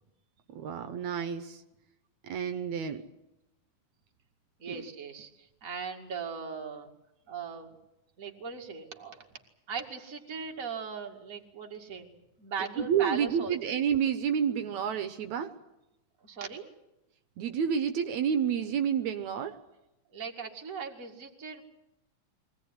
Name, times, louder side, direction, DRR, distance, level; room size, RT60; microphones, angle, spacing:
voice 1, 0.5-1.6 2.2-3.0 4.7-4.8 12.8-15.5 17.4-19.5, right 8 dB, 75° right, 8 dB, 2.3 m, -29 dB
voice 2, 4.6-6.9 7.3-7.8 8.2-9.3 9.7-12.1 12.4-13.8 16.2-16.7 20.1-21.6, right 5 dB, 30° right, 2 dB, 2.4 m, -39 dB
23.5 x 18.0 x 9.7 m, 0.92 s
omnidirectional pair, 3.4 m